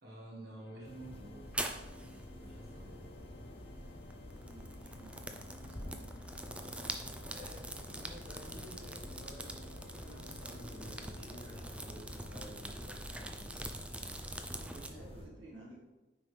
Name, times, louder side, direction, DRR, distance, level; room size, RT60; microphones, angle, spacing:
voice 1, 0.0-1.5 2.4-3.1 7.3-13.8, right 1 dB, 55° right, -4 dB, 1.6 m, -51 dB
Organ, 0.6-12.4, left 2 dB, 60° left, 0.5 m, -56 dB
sound 1, 0.8-15.3, equal, 35° left, 1.0 m, -50 dB
sound 2, 1.4-14.9, right 1 dB, 5° right, 0.4 m, -45 dB
voice 2, 4.4-6.1 14.6-15.8, right 1 dB, 90° right, -3 dB, 2.0 m, -54 dB
9.1 x 4.9 x 3.3 m, 1.1 s
head